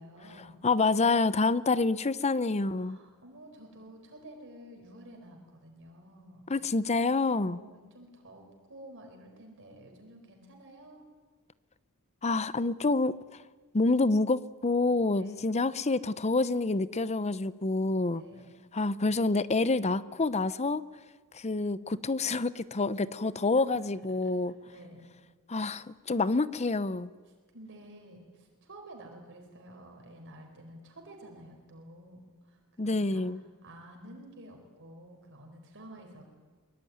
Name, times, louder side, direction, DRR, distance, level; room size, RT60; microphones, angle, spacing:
voice 1, 0.0-0.6 2.6-6.5 7.2-11.0 15.1-15.6 18.0-18.6 23.7-25.1 27.3-33.3 33.6-36.2, right 1 dB, 60° right, 2 dB, 4.4 m, -51 dB
voice 2, 0.6-3.0 6.5-7.6 12.2-13.1 13.7-18.2 18.7-20.8 21.3-24.5 25.5-27.1 32.8-33.4, left 3 dB, 30° left, 17 dB, 0.7 m, -27 dB
23.5 x 22.5 x 9.4 m, 1.3 s
head